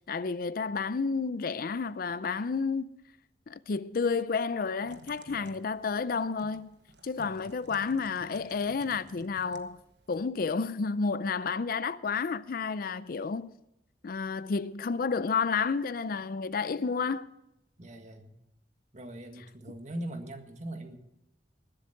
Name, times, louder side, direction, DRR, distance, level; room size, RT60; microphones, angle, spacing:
voice 1, 0.0-2.9 3.5-6.8 7.0-9.8 10.1-13.5 14.0-17.3, left 5 dB, 55° left, 0.5 m, -31 dB
Typing, 4.8-10.2, right 1 dB, 70° right, 1.2 m, -54 dB
voice 2, 17.8-18.3 18.9-21.0, right 1 dB, 40° right, 1.7 m, -41 dB
20.0 x 7.9 x 5.9 m
head